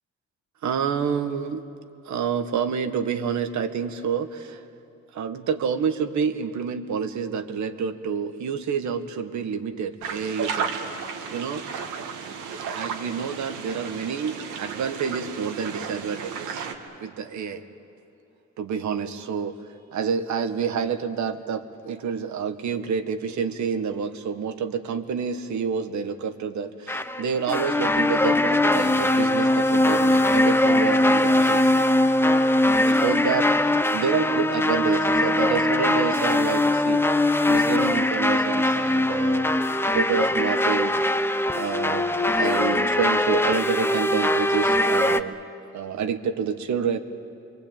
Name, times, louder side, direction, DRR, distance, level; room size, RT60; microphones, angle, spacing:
voice 1, 0.6-1.6 2.0-4.6 5.1-10.7 11.3-11.6 12.4-16.7 17.0-17.6 18.6-19.6 19.9-31.8 32.9-37.0 37.5-39.5 39.9-40.9 41.5-45.3 45.7-47.0, right 6 dB, 70° right, 8 dB, 1.6 m, -28 dB
sound 1, 10.0-16.7, right 6 dB, 85° right, 2.1 m, -33 dB
sound 2, 26.9-45.2, left 1 dB, 10° left, 0.8 m, -21 dB
25.5 x 23.0 x 8.9 m, 2.6 s
cardioid pair, 90°, 30 cm